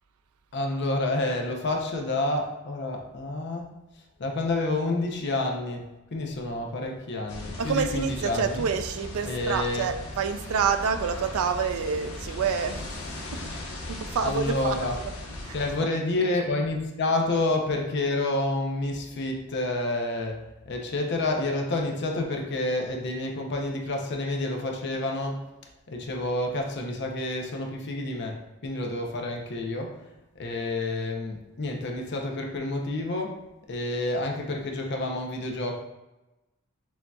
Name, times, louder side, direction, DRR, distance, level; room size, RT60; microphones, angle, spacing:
voice 1, 0.5-3.7 4.2-8.7 9.3-9.9 14.2-15.0 15.5-25.4 25.9-29.9 30.4-33.3 33.7-35.8, left 2 dB, 50° left, 2 dB, 0.6 m, -29 dB
sound 1, 7.3-15.8, left 1 dB, 80° left, 0.8 m, -38 dB
voice 2, 7.6-12.8 13.3-13.4 13.9-14.8 15.4-15.5, right 6 dB, 80° right, 9 dB, 0.4 m, -27 dB
6.3 x 2.8 x 2.3 m, 1.0 s
head